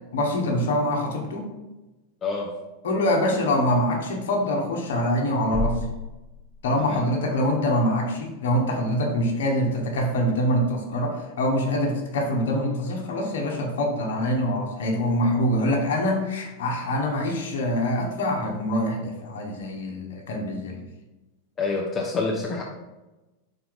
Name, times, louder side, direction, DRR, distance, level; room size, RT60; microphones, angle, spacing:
voice 1, 0.1-1.5 2.8-5.8 6.6-20.8, left 1 dB, 60° left, 1 dB, 1.1 m, -24 dB
sound 1, 5.5-7.1, equal, ahead, 1.2 m, -31 dB
voice 2, 21.6-22.6, left 4 dB, 25° left, -2 dB, 0.8 m, -27 dB
5.4 x 4.5 x 3.9 m, 1.1 s
figure-of-eight pair, 90°, 0 cm